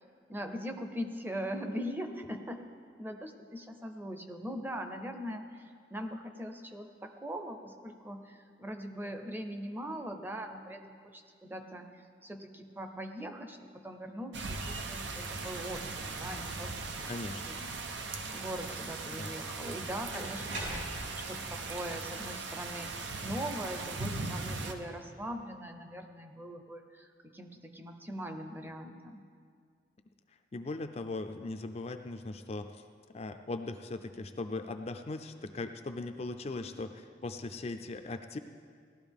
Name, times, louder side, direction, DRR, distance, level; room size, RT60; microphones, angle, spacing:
voice 1, 0.3-2.6 3.0-16.7 17.0-17.1 17.5-22.9 23.2-29.2, equal, 10° right, 6 dB, 0.6 m, -41 dB
sound 1, 14.3-24.7, right 3 dB, 90° right, 0.9 m, -39 dB
voice 2, 17.1-17.4 19.1-19.3 30.3-32.8 33.1-38.4, left 2 dB, 35° left, 7 dB, 0.4 m, -39 dB
sound 2, 20.1-21.2, right 1 dB, 60° right, 4.1 m, -40 dB
17.5 x 12.0 x 3.5 m, 2.1 s
head